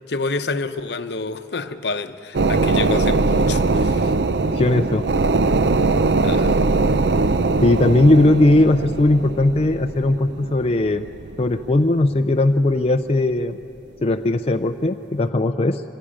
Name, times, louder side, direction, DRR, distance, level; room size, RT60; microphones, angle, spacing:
voice 1, 0.1-4.1 6.2-6.6, left 3 dB, 65° left, 0.8 m, -28 dB
sound 1, 2.3-12.3 12.7-12.8, right 3 dB, 65° right, 0.5 m, -21 dB
voice 2, 4.5-5.0 7.6-11.1 11.4-13.6 14.0-15.8, left 2 dB, 35° left, 0.4 m, -18 dB
24.5 x 16.0 x 8.8 m
head